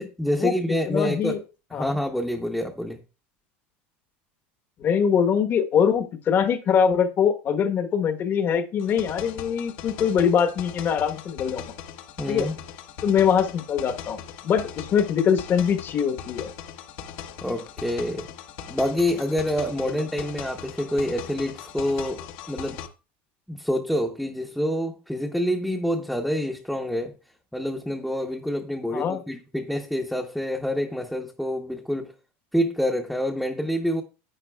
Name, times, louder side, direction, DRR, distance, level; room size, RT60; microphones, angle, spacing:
voice 1, 0.0-1.4 1.7-3.0 12.2-12.6 17.4-18.3 18.7-22.8 23.5-27.1 27.5-32.1 32.5-34.0, equal, ahead, 0.9 m, -27 dB
voice 2, 0.9-1.4 1.7-1.9 4.8-11.7 12.3-12.5 13.0-16.5 28.9-29.2, left 7 dB, 35° left, 1.1 m, -23 dB
sound 1, 8.8-22.9, left 9 dB, 60° left, 1.1 m, -40 dB
11.0 x 8.4 x 2.3 m
supercardioid pair, 135°, 6 cm